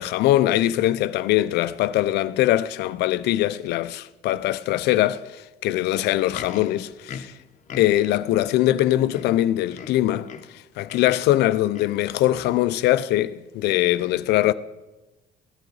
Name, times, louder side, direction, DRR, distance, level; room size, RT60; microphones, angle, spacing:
voice 1, 0.0-7.3 7.8-10.3 10.5-14.5, left 14 dB, 80° left, 0.5 m, -22 dB
Livestock farm animals working animals, 6.1-8.2 8.8-8.9 9.1-10.6 10.9-11.2 11.7-12.1 12.7-12.8, left 7 dB, 50° left, 0.9 m, -40 dB
15.5 x 10.0 x 4.0 m
cardioid pair, 110°, 17 cm